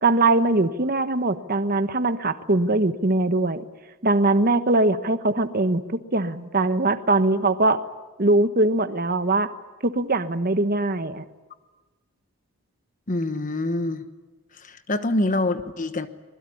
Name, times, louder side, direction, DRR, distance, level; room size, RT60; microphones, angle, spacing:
voice 1, 0.0-3.6 4.0-7.8 8.2-9.5 9.8-11.2, right 2 dB, 40° right, 11 dB, 1.2 m, -21 dB
voice 2, 13.1-14.1 14.6-16.1, left 2 dB, 35° left, 10 dB, 1.2 m, -25 dB
25.5 x 20.5 x 9.9 m, 1.2 s
head